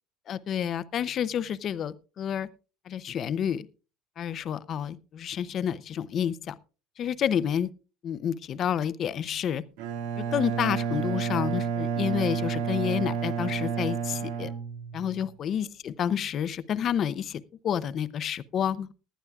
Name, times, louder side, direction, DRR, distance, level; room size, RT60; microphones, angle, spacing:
voice 1, 0.3-2.5 2.9-3.7 4.2-6.5 7.0-7.7 8.0-9.6 10.2-14.5 14.9-18.9, left 9 dB, 40° left, 0.6 m, -29 dB
Bowed string instrument, 9.8-15.3, right 7 dB, 85° right, 1.9 m, -30 dB
19.0 x 11.0 x 2.4 m
cardioid pair, 135°, 0 cm